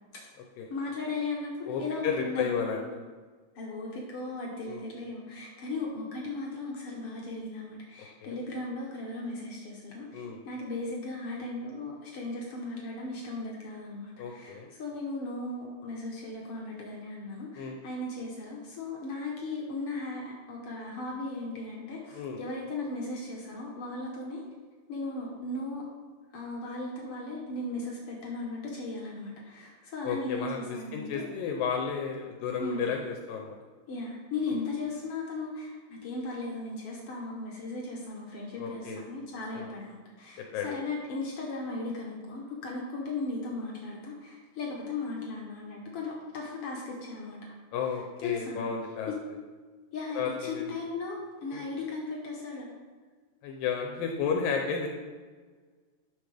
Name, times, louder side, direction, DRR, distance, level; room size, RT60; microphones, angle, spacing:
voice 1, 0.7-2.5 2.8-3.1 3.5-24.4 24.9-25.8 26.3-31.2 32.6-32.8 33.9-47.5 48.2-48.7 49.1-49.2 49.9-52.7, left 2 dB, 60° left, -2 dB, 1.5 m, -37 dB
voice 2, 1.7-2.8 4.7-4.8 8.2-8.4 10.1-10.4 14.2-14.7 17.6-17.8 22.1-22.4 30.0-33.6 38.6-39.0 39.5-39.7 40.5-40.8 47.7-49.1 50.2-50.7 51.5-51.7 53.4-54.9, left 6 dB, 80° left, 2 dB, 2.3 m, -32 dB
11.5 x 6.1 x 3.4 m, 1.5 s
omnidirectional pair, 4.2 m